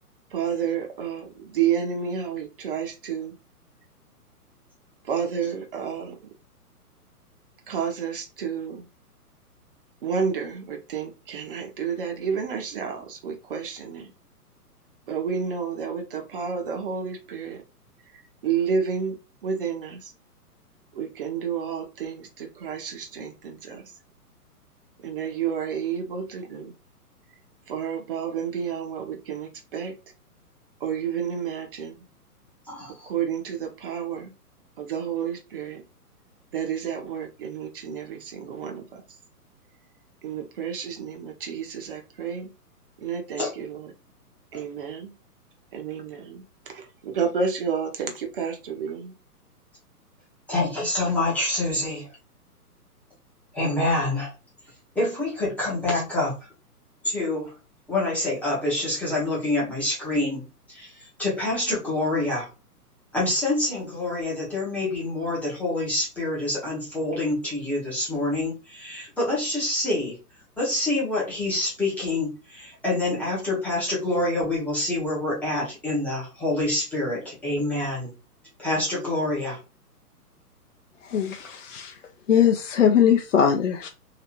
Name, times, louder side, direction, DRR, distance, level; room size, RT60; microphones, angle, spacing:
voice 1, 0.3-3.3 5.0-6.2 7.7-8.9 10.0-14.1 15.1-17.6 18.1-19.2 19.4-20.1 20.9-23.9 25.0-26.7 27.7-29.9 30.8-32.0 33.0-34.3 34.8-35.8 36.5-39.0 40.2-42.5 43.0-43.9 44.5-45.1 45.7-49.1, right 7 dB, 35° right, 0.8 m, -30 dB
voice 2, 32.7-33.1 43.4-43.5 44.5-44.6 50.5-52.1 53.5-54.3 54.9-56.5 57.0-57.5 57.9-62.5 63.1-70.2 70.6-78.1 78.6-79.6, left 2 dB, 5° left, 0.7 m, -26 dB
voice 3, 81.1-81.9 82.3-83.9, left 8 dB, 55° left, 0.5 m, -20 dB
3.2 x 2.9 x 2.9 m
figure-of-eight pair, 120°, 47 cm